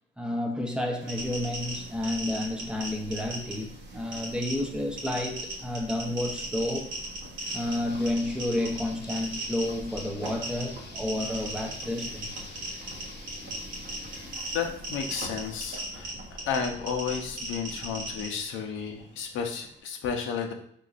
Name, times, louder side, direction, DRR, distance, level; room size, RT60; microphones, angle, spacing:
voice 1, 0.2-6.9 7.5-12.5, left 1 dB, 5° right, 1 dB, 0.6 m, -31 dB
sound 1, 1.0-19.8, right 2 dB, 60° right, 0.8 m, -48 dB
sound 2, 1.1-18.3, right 2 dB, 90° right, 1.5 m, -38 dB
sound 3, 7.5-14.3, left 3 dB, 55° left, 0.7 m, -47 dB
voice 2, 14.5-16.1 16.5-20.5, left 6 dB, 85° left, 3 dB, 0.6 m, -32 dB
3.7 x 3.0 x 2.4 m, 0.68 s
cardioid pair, 90°, 20 cm